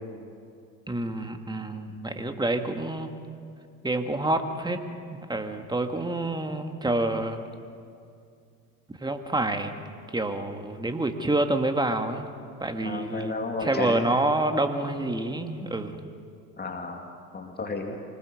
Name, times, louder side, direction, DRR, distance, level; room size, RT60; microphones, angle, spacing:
voice 1, 0.9-3.2 3.8-4.8 5.1-7.4 8.9-9.8 10.1-12.3 12.6-16.0, right 2 dB, 10° right, 6 dB, 1.9 m, -28 dB
voice 2, 12.8-14.0 16.6-17.0 17.3-18.0, left 3 dB, 20° left, 2 dB, 2.4 m, -32 dB
25.0 x 19.5 x 6.6 m, 2.4 s
hypercardioid pair, 75°, 47 cm